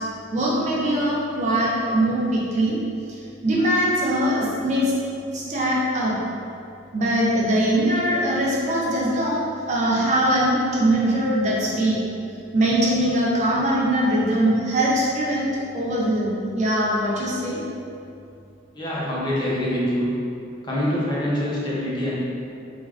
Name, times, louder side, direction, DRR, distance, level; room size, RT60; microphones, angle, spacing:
voice 1, 0.3-2.8 3.1-4.9 5.3-6.1 6.9-9.4 9.7-12.0 12.5-17.6, right 1 dB, 35° right, -5 dB, 0.4 m, -22 dB
voice 2, 18.7-20.1 20.6-22.2, equal, 25° left, -7 dB, 0.5 m, -25 dB
3.3 x 2.2 x 2.3 m, 2.6 s
head